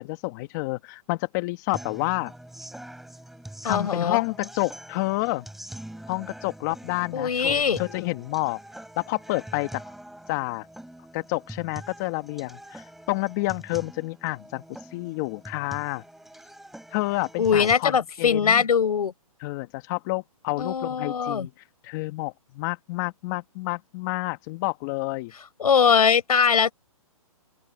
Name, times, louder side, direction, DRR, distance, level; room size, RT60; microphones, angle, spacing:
voice 1, 0.0-2.3 3.6-5.5 6.1-8.6 9.0-9.8 10.3-10.7 11.1-16.0 16.9-18.6 19.4-25.3, left 23 dB, 30° left, 1.8 m, -29 dB
sound 1, 1.7-17.7, right 1 dB, ahead, 4.3 m, -44 dB
voice 2, 3.6-4.2 7.1-7.8 17.4-19.1 20.6-21.5 25.6-26.7, left 6 dB, 80° left, 5.8 m, -21 dB
open air
hypercardioid pair, 155°, 19 cm